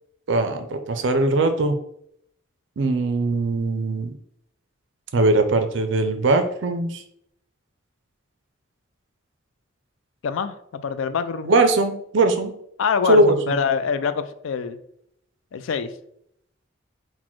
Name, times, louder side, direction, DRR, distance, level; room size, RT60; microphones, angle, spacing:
voice 1, 0.3-1.8 2.8-4.1 5.1-7.0 11.4-12.5 13.1-13.5, right 2 dB, 60° right, 7 dB, 0.5 m, -20 dB
voice 2, 10.2-11.5 12.8-14.8 15.5-15.9, left 6 dB, 75° left, 12 dB, 0.3 m, -25 dB
4.1 x 2.1 x 4.4 m, 0.72 s
head